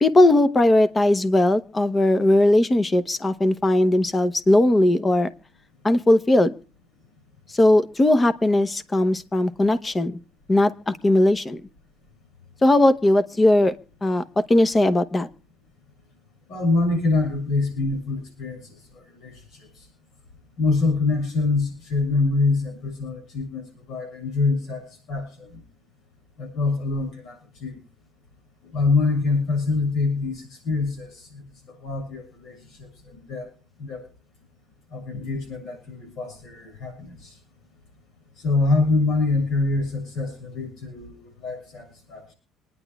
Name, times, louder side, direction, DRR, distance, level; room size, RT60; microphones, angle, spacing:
voice 1, 0.0-5.3 5.8-6.5 7.5-10.1 10.5-11.6 12.6-13.7 14.0-15.3, left 1 dB, 15° left, 13 dB, 0.8 m, -19 dB
voice 2, 16.5-18.6 18.9-19.4 20.6-25.6 26.4-27.8 28.7-31.4 31.8-33.5 33.8-34.0 34.9-37.3 38.4-42.2, left 3 dB, 60° left, 2 dB, 6.8 m, -25 dB
26.5 x 10.0 x 2.3 m, 0.37 s
cardioid pair, 155°, 0 cm